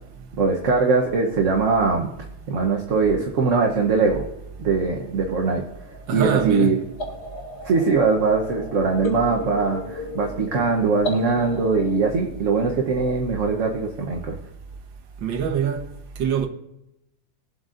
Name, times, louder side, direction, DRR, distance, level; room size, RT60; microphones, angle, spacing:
voice 1, 0.4-2.1 2.5-4.3 4.6-5.6 6.1-6.9 7.6-14.4, right 4 dB, 50° right, 1.1 m, -21 dB
sound 1, 5.3-12.0, left 1 dB, 60° left, 1.9 m, -36 dB
voice 2, 6.1-6.8 15.2-15.9 16.2-16.5, right 8 dB, 75° right, 1.7 m, -23 dB
22.5 x 7.8 x 2.6 m
omnidirectional pair, 2.1 m